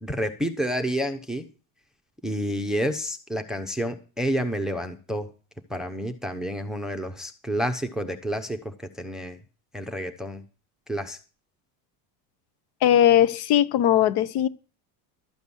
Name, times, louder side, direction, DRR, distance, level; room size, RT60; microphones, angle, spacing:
voice 1, 0.0-1.5 2.2-5.3 5.7-9.4 9.7-10.4 10.9-11.2, equal, ahead, 0.8 m, -29 dB
voice 2, 12.8-14.5, left 11 dB, 55° left, 1.0 m, -19 dB
13.0 x 8.0 x 7.1 m
cardioid pair, 140°, 46 cm